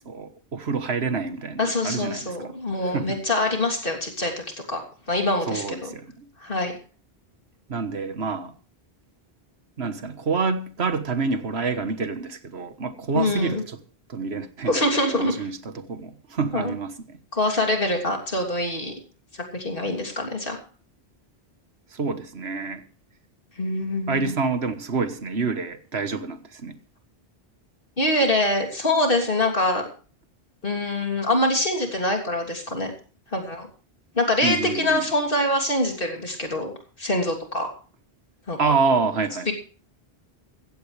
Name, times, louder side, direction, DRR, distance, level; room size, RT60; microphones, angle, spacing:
voice 1, 0.0-2.5 2.8-3.2 5.5-6.3 7.7-8.5 9.8-13.8 14.1-17.2 21.9-22.8 24.1-26.8 34.4-35.1 38.6-39.5, right 4 dB, 75° right, 1.6 m, -27 dB
voice 2, 1.6-4.8 5.1-5.9 6.4-6.7 13.1-13.6 14.7-15.4 16.5-16.7 17.3-18.9 19.5-20.6 23.6-24.3 28.0-29.8 30.6-32.9 33.3-33.7 34.1-37.7 38.5-38.6 39.5-39.6, left 1 dB, 55° left, 3.3 m, -24 dB
15.5 x 15.5 x 3.3 m
omnidirectional pair, 1.1 m